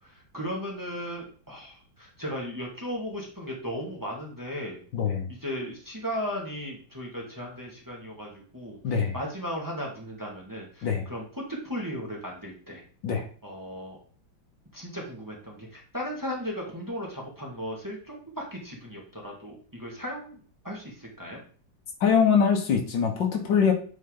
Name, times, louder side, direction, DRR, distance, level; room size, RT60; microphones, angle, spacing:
voice 1, 0.0-4.8 5.3-12.8 13.4-14.0 14.7-21.4, equal, 10° right, -2 dB, 1.9 m, -36 dB
voice 2, 4.9-5.3 8.8-9.1 10.8-11.0 13.0-13.3 22.0-23.7, left 6 dB, 70° left, 3 dB, 1.8 m, -23 dB
9.2 x 4.3 x 3.8 m, 0.42 s
omnidirectional pair, 2.1 m